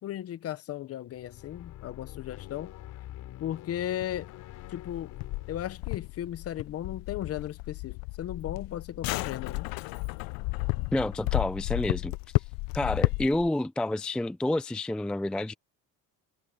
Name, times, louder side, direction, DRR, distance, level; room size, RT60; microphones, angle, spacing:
voice 1, 0.0-2.7 3.4-4.3 4.7-5.1 5.5-9.7, left 11 dB, 45° left, 0.8 m, -36 dB
sound 1, 1.1-7.4, left 14 dB, 65° left, 4.6 m, -46 dB
sound 2, 4.0-13.5, left 25 dB, 85° left, 0.5 m, -33 dB
voice 2, 10.9-12.1 12.7-15.5, left 1 dB, 5° left, 0.4 m, -29 dB
cardioid pair, 155°, 34 cm